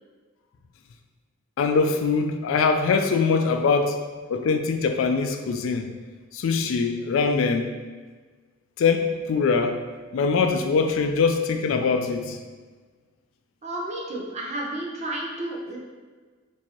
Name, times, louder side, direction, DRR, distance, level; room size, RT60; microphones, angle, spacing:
voice 1, 1.6-4.0 4.3-5.9 6.3-7.7 8.8-9.8 10.1-12.4, left 4 dB, 75° left, 6 dB, 0.3 m, -22 dB
voice 2, 13.6-15.8, right 1 dB, 35° right, -2 dB, 0.6 m, -31 dB
4.6 x 2.7 x 2.9 m, 1.4 s
head